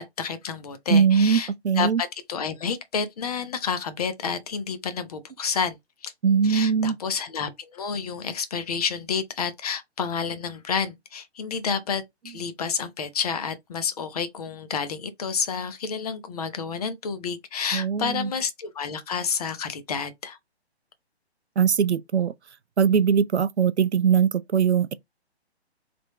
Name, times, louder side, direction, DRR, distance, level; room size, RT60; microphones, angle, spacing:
voice 1, 0.0-1.5 1.8-5.8 6.0-6.1 6.4-20.4, left 6 dB, 35° left, 0.8 m, -30 dB
voice 2, 0.9-2.0 6.2-7.0 17.7-18.3 21.6-22.3 22.8-24.9, right 7 dB, 80° right, 0.6 m, -21 dB
3.8 x 3.4 x 3.5 m
figure-of-eight pair, 135°, 33 cm